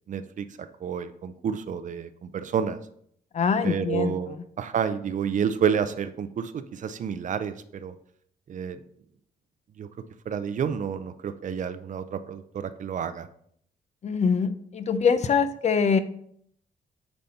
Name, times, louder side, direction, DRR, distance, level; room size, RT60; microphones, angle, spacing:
voice 1, 0.1-2.8 3.6-7.9 8.5-8.8 9.8-9.9 10.3-13.3, right 7 dB, 55° right, 11 dB, 0.6 m, -30 dB
voice 2, 3.3-4.2 14.0-16.0, left 5 dB, 45° left, 11 dB, 0.6 m, -23 dB
8.8 x 4.2 x 4.2 m, 0.67 s
cardioid pair, 105°, 16 cm